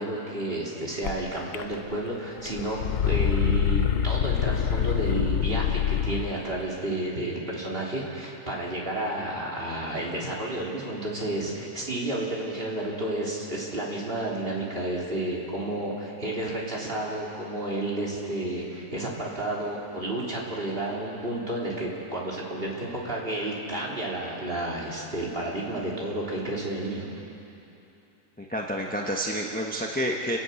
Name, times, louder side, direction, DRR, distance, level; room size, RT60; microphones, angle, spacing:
voice 1, 0.0-27.1, right 1 dB, 35° right, -4 dB, 3.6 m, -31 dB
sound 1, 1.0-1.1 1.5-2.1 2.4-6.4, left 9 dB, 60° left, 1.1 m, -25 dB
voice 2, 28.4-30.4, equal, 5° left, -1 dB, 1.1 m, -29 dB
29.5 x 11.0 x 8.4 m, 2.9 s
omnidirectional pair, 1.7 m